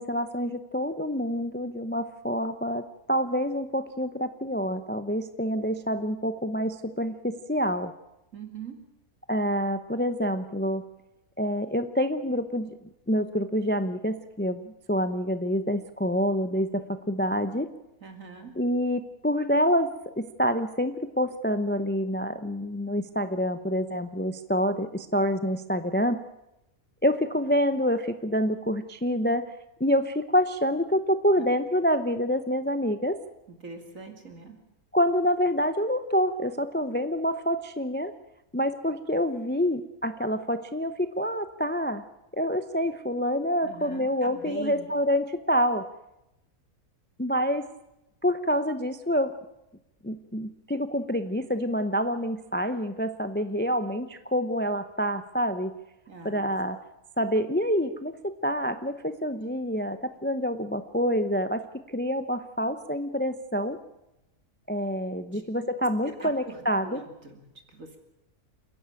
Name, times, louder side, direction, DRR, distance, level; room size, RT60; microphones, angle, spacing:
voice 1, 0.0-7.9 9.3-10.8 11.4-12.7 13.1-17.7 18.6-26.2 27.0-29.5 29.8-33.2 34.9-38.1 38.5-42.0 42.3-45.9 47.2-47.7 48.2-49.3 50.0-55.7 56.2-56.8 57.2-63.8 64.7-67.0, equal, 10° left, 10 dB, 0.5 m, -27 dB
voice 2, 8.3-8.8 18.0-18.5 31.4-31.5 33.6-34.6 43.6-44.9 56.1-56.5 65.3-65.4 66.0-68.0, right 4 dB, 60° right, 4 dB, 3.1 m, -42 dB
28.5 x 11.0 x 9.0 m, 0.92 s
omnidirectional pair, 1.6 m